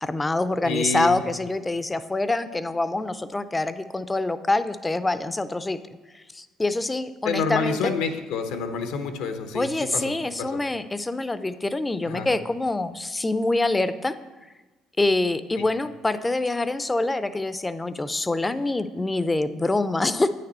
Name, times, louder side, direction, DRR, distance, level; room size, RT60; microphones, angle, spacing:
voice 1, 0.0-5.8 6.1-7.9 9.5-14.2 15.0-20.3, left 2 dB, 15° left, 13 dB, 0.5 m, -25 dB
voice 2, 0.6-1.1 7.2-10.0 10.4-10.6 12.0-12.3 15.6-15.7, left 4 dB, 80° left, 7 dB, 0.8 m, -28 dB
9.0 x 6.7 x 4.3 m, 1.2 s
supercardioid pair, 75°, 0 cm